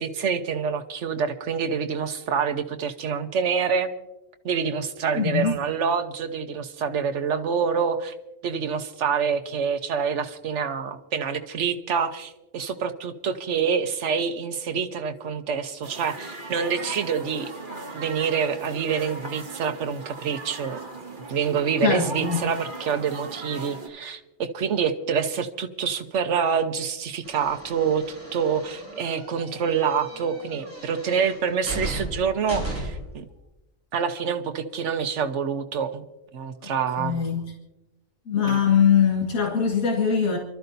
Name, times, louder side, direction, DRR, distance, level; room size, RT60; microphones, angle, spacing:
voice 1, 0.0-3.9 4.4-8.1 8.4-17.5 17.9-20.8 21.3-33.2 33.9-36.0 36.3-37.2 38.4-38.6, right 6 dB, 65° right, 1.2 m, -26 dB
voice 2, 5.1-5.5 21.8-22.4 36.6-36.7 37.0-37.4 38.3-40.4, left 7 dB, 90° left, 2.2 m, -22 dB
sound 1, 15.8-23.9, right 2 dB, 40° right, 1.6 m, -38 dB
sound 2, 27.2-33.1, right 1 dB, 10° left, 6.1 m, -36 dB
28.5 x 12.5 x 2.7 m
omnidirectional pair, 1.4 m